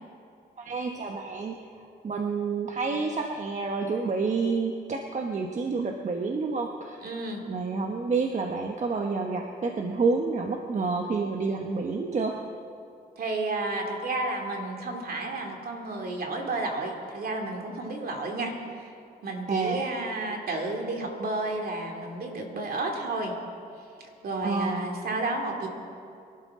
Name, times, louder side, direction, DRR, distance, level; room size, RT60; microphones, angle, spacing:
voice 1, 0.6-1.5 2.0-7.0 7.5-12.4 19.5-19.8 24.4-24.9, right 4 dB, 45° right, 2 dB, 1.1 m, -29 dB
voice 2, 7.0-7.4 13.2-18.9 19.2-23.3 24.2-25.7, right 2 dB, 60° right, 2 dB, 2.5 m, -31 dB
23.5 x 12.0 x 3.7 m, 2.5 s
cardioid pair, 95°, 18 cm